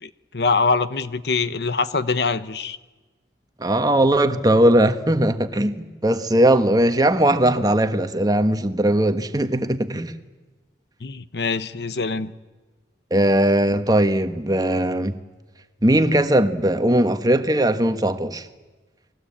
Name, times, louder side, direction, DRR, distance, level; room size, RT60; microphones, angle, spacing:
voice 1, 0.0-2.8 11.0-12.3, left 4 dB, 65° left, 14 dB, 1.0 m, -24 dB
voice 2, 3.6-10.1 13.1-15.1 15.8-18.4, right 1 dB, 20° right, 9 dB, 1.3 m, -19 dB
29.5 x 20.5 x 8.7 m, 1.2 s
head